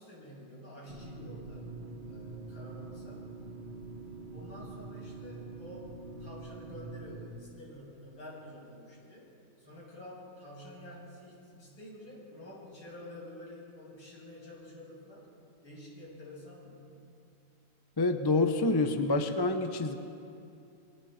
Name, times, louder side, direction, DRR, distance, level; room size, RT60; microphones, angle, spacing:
voice 1, 0.0-1.7 2.1-3.2 4.3-5.9 6.2-9.3 9.6-15.3 15.6-17.0, left 1 dB, 80° left, -5 dB, 8.6 m, -49 dB
sound 1, 0.9-7.3, right 3 dB, 30° right, 4.0 m, -45 dB
voice 2, 18.0-19.9, left 2 dB, 20° left, 6 dB, 0.7 m, -27 dB
29.0 x 23.5 x 4.4 m, 2.6 s
omnidirectional pair, 2.1 m